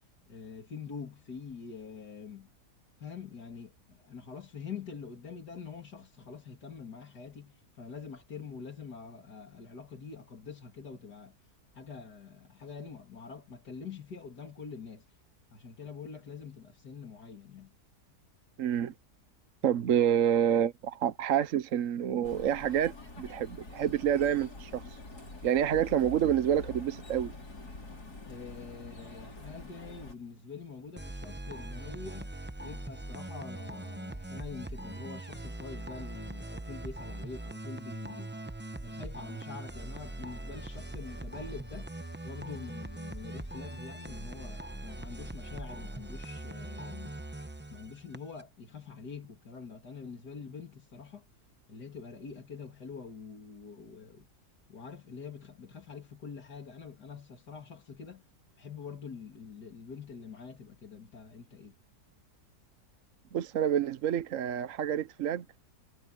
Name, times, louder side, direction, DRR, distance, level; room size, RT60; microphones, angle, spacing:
voice 1, 0.3-2.5 3.0-11.4 11.7-15.0 15.5-17.7 28.2-32.3 32.6-38.4 38.8-41.9 42.2-47.2 47.7-51.2 51.7-54.3 54.7-58.2 58.6-61.7, left 5 dB, 90° left, 3.4 m, -45 dB
voice 2, 18.6-18.9 19.6-24.8 25.4-27.3 63.3-65.4, right 9 dB, 60° right, 1.1 m, -28 dB
sound 1, 22.2-30.2, left 2 dB, 75° left, 5.3 m, -46 dB
sound 2, 31.0-48.4, right 1 dB, 10° right, 0.5 m, -41 dB
omnidirectional pair, 1.7 m